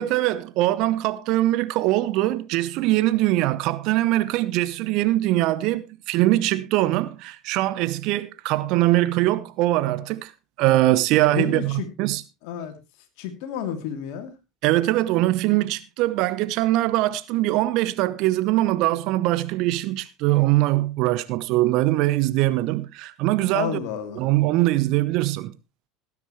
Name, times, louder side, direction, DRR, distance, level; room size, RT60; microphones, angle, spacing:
voice 1, 0.0-10.3 10.6-12.2 14.6-23.8 24.2-25.5, right 16 dB, 60° right, 0.9 m, -22 dB
voice 2, 11.3-11.9 12.4-12.7 13.2-14.3 23.5-24.2, left 9 dB, 60° left, 2.7 m, -30 dB
18.0 x 9.9 x 3.1 m
hypercardioid pair, 75°, 0 cm